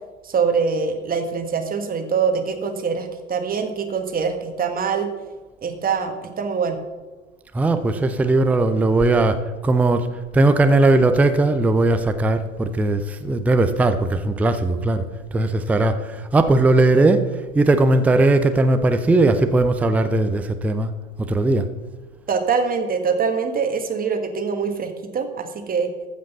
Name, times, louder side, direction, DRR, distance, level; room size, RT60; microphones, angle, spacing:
voice 1, 0.2-5.1 5.6-6.8 22.3-25.9, right 5 dB, 20° right, 6 dB, 1.6 m, -24 dB
voice 2, 7.5-10.1 10.3-15.0 15.3-20.9 21.2-21.7, right 2 dB, 5° right, 10 dB, 0.5 m, -18 dB
14.0 x 5.2 x 6.8 m, 1.3 s
hypercardioid pair, 90°, 39 cm